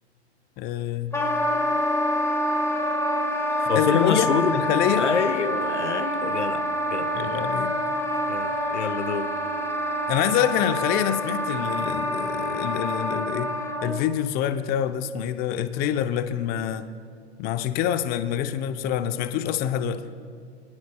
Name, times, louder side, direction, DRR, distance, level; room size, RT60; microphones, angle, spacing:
voice 1, 0.6-1.2 3.6-5.1 7.1-7.8 10.1-13.5 13.8-16.9 17.4-20.0, left 10 dB, 25° left, 10 dB, 0.6 m, -26 dB
Wind instrument woodwind instrument, 1.1-14.0, equal, 10° left, 1.8 m, -26 dB
voice 2, 3.7-4.6 5.0-6.7 6.9-7.2 8.3-9.3, left 6 dB, 90° left, 11 dB, 1.0 m, -26 dB
22.5 x 18.5 x 2.2 m, 2.3 s
hypercardioid pair, 115°, 34 cm